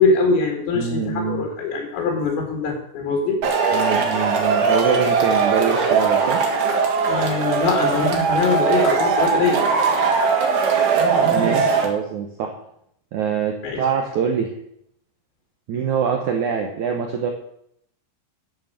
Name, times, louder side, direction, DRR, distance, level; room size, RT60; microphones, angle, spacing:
voice 1, 0.0-3.5 7.1-9.6 13.6-13.8, left 4 dB, 75° left, 1 dB, 4.4 m, -22 dB
voice 2, 0.7-1.5 3.7-6.4 11.2-12.5 13.1-14.5 15.7-17.3, right 7 dB, 90° right, 3 dB, 1.6 m, -24 dB
Male speech man speaking / Shout / Clapping, 3.4-11.9, right 5 dB, 55° right, 2.8 m, -20 dB
9.2 x 8.8 x 7.5 m, 0.72 s
omnidirectional pair, 5.2 m